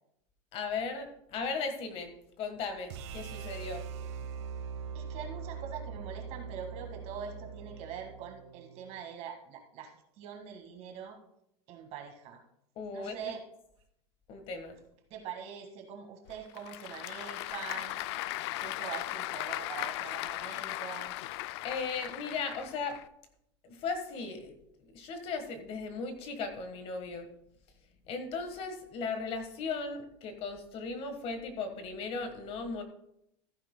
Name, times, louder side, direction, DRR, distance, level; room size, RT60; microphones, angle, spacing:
voice 1, 0.5-3.8 12.8-13.3 14.3-14.8 21.6-23.0 23.6-24.5 24.9-27.3 28.1-32.8, left 4 dB, 40° left, 7 dB, 1.4 m, -37 dB
sound 1, 2.9-9.0, right 6 dB, 70° right, 1.2 m, -42 dB
voice 2, 4.9-11.2 11.7-12.4 12.9-13.4 15.1-18.0 18.6-21.1, right 7 dB, 45° right, 4 dB, 1.8 m, -43 dB
Applause / Crowd, 16.3-23.0, left 17 dB, 65° left, 0.4 m, -37 dB
14.5 x 10.0 x 2.2 m, 0.76 s
supercardioid pair, 150°, 15 cm